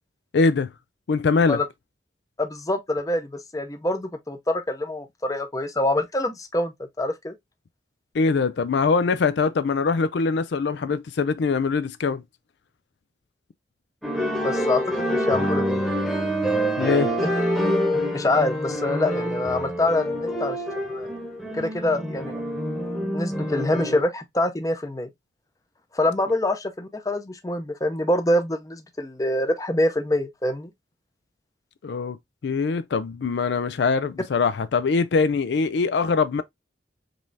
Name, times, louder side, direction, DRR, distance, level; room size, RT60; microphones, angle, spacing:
voice 1, 0.3-0.7 1.1-1.6 8.1-12.2 16.8-17.1 31.8-32.2 32.4-36.4, left 4 dB, 70° left, 0.4 m, -22 dB
voice 2, 2.4-7.3 14.4-15.8 17.2-17.3 18.1-20.6 20.9-21.1 21.5-22.4 23.1-25.1 25.9-30.7, left 1 dB, 20° left, 0.6 m, -25 dB
sound 1, 14.0-24.0, equal, ahead, 1.0 m, -26 dB
5.2 x 3.2 x 2.6 m
head